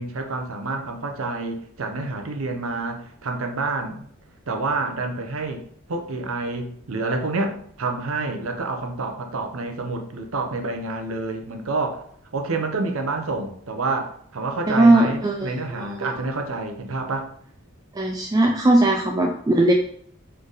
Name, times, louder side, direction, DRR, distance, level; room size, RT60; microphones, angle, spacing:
voice 1, 0.0-4.1 4.5-5.6 5.9-12.0 12.3-17.3, right 3 dB, 80° right, 5 dB, 0.7 m, -28 dB
voice 2, 14.7-15.5 16.0-16.2 18.0-19.7, right 2 dB, 20° right, 1 dB, 0.3 m, -18 dB
3.9 x 3.3 x 3.9 m, 0.62 s
head